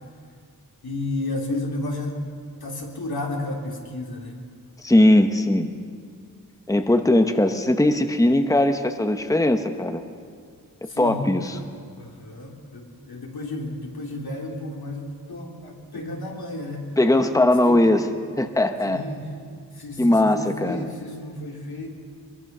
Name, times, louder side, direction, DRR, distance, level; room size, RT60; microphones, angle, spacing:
voice 1, 0.8-2.2 2.6-4.4 10.9-11.7 12.0-16.9 17.6-17.8 18.8-19.3 19.7-21.9, left 2 dB, 85° left, -1 dB, 3.4 m, -32 dB
voice 2, 4.8-5.7 6.7-10.0 11.0-11.6 17.0-18.1 18.4-19.0 20.0-20.9, left 1 dB, 10° left, 7 dB, 1.1 m, -19 dB
23.5 x 22.5 x 6.1 m, 2.1 s
wide cardioid pair, 95°, 36 cm